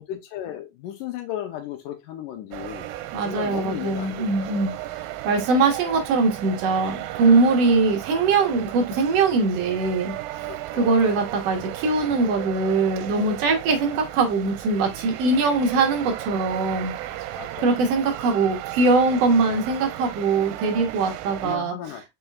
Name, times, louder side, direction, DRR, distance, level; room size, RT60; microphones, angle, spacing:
voice 1, 0.0-2.9 3.2-4.7 10.5-11.0 17.4-17.8 21.4-22.1, left 11 dB, 80° left, 2.1 m, -35 dB
sound 1, 2.5-21.6, right 14 dB, 85° right, 2.2 m, -35 dB
voice 2, 3.1-10.1 10.7-16.9 17.6-21.7, right 3 dB, 65° right, 1.7 m, -22 dB
5.4 x 4.4 x 2.2 m
omnidirectional pair, 3.9 m